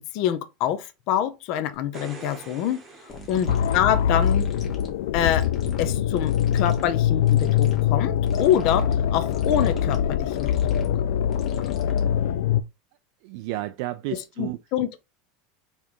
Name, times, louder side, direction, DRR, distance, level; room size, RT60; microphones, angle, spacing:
voice 1, 0.0-2.8 3.3-4.5 5.1-5.5 5.8-10.9 14.4-15.0, left 10 dB, 50° left, 0.6 m, -26 dB
sound 1, 1.7-4.3 7.4-7.5, right 3 dB, 25° right, 0.9 m, -45 dB
sound 2, 3.1-12.4, equal, 25° left, 1.2 m, -40 dB
voice 2, 3.3-3.7 12.2-12.6 13.2-14.6, right 17 dB, 60° right, 0.3 m, -33 dB
sound 3, 3.5-12.6, left 9 dB, 85° left, 0.3 m, -23 dB
4.3 x 3.4 x 3.0 m
supercardioid pair, 160°, 0 cm